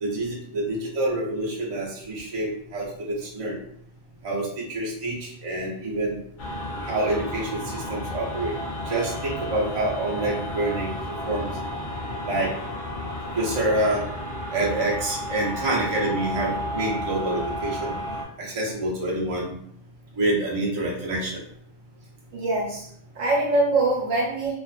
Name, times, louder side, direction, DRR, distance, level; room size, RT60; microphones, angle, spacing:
voice 1, 0.0-3.6 4.2-6.2 6.8-8.5 8.8-10.9 11.2-11.5 12.2-12.5 13.3-14.0 14.5-17.9 18.4-19.5 20.2-21.4, right 1 dB, 40° right, -3 dB, 0.5 m, -27 dB
sound 1, 6.4-18.2, equal, 65° left, 0.4 m, -32 dB
voice 2, 22.3-22.9 23.1-24.5, right 2 dB, 80° right, -2 dB, 1.1 m, -23 dB
2.4 x 2.4 x 2.4 m, 0.67 s
omnidirectional pair, 1.3 m